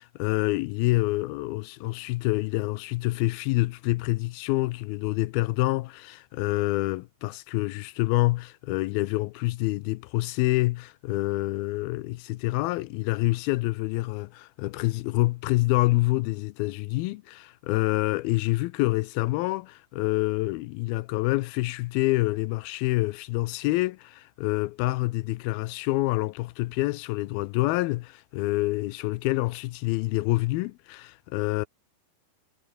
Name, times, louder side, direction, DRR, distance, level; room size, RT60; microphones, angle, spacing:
voice 1, 0.0-31.7, left 20 dB, 80° left, 2.3 m, -27 dB
omnidirectional pair, 4.6 m